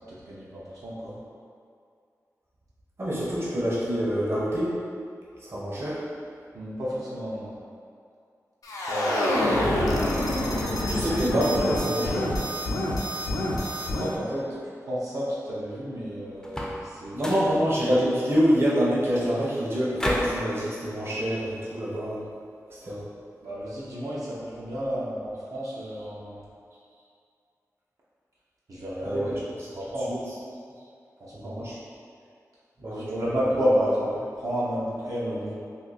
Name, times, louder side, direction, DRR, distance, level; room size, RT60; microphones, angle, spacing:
voice 1, 0.1-1.2 6.5-7.6 8.9-10.0 13.9-14.4 14.8-17.2 22.8-22.9 23.4-26.4 28.7-29.4 29.7-30.2 31.2-31.6 32.9-34.1 34.4-35.5, equal, 75° right, -8 dB, 0.7 m, -31 dB
voice 2, 3.0-4.8 5.4-6.0 10.9-12.3 17.1-22.2 22.9-23.0 29.0-29.4 30.1-30.2 31.3-31.7 32.8-33.1, equal, 45° right, -8 dB, 0.8 m, -26 dB
sound 1, 8.6-14.2, left 1 dB, 85° left, 0.5 m, -26 dB
sound 2, 16.4-16.9 17.2-17.6 20.0-20.4, left 1 dB, 10° left, 0.4 m, -30 dB
2.6 x 2.6 x 4.0 m, 2.3 s
wide cardioid pair, 105°, 6 cm